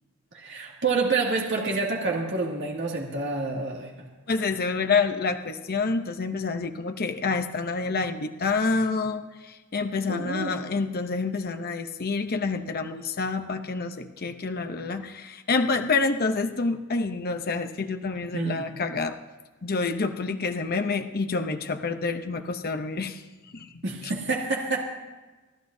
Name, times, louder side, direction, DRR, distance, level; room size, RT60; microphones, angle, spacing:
voice 1, 0.3-4.1 10.1-10.6 18.3-18.6 23.8-24.8, right 3 dB, 55° right, -1 dB, 2.2 m, -28 dB
voice 2, 4.3-19.2 19.6-23.2 23.5-23.7, left 4 dB, 45° left, 7 dB, 0.7 m, -28 dB
29.0 x 11.5 x 2.7 m, 1.2 s
head